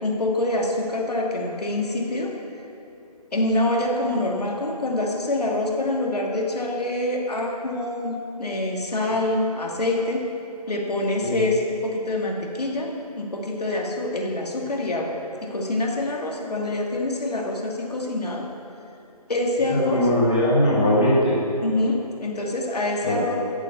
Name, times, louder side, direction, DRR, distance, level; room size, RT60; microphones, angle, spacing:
voice 1, 0.0-2.3 3.3-10.2 10.7-18.5 19.3-20.1 21.6-23.4, left 2 dB, 70° left, -1 dB, 2.6 m, -25 dB
voice 2, 19.7-21.4 23.0-23.2, equal, 10° left, -7 dB, 0.7 m, -20 dB
12.0 x 8.2 x 7.1 m, 2.7 s
figure-of-eight pair, 170°, 21 cm